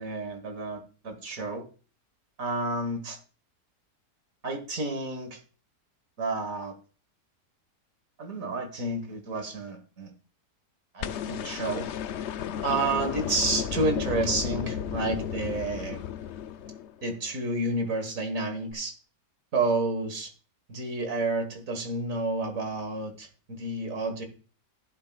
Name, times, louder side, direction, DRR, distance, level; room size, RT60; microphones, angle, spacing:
voice 1, 0.0-1.6 2.4-3.2 4.4-5.4 6.2-6.8 8.2-10.1 10.9-11.9 12.6-16.0 17.0-18.9 19.5-20.3 20.7-24.3, right 3 dB, 55° right, 6 dB, 2.0 m, -30 dB
sound 1, 11.0-17.2 18.7-18.8, left 9 dB, 80° left, 0.6 m, -33 dB
12.0 x 10.5 x 2.4 m, 0.38 s
omnidirectional pair, 1.8 m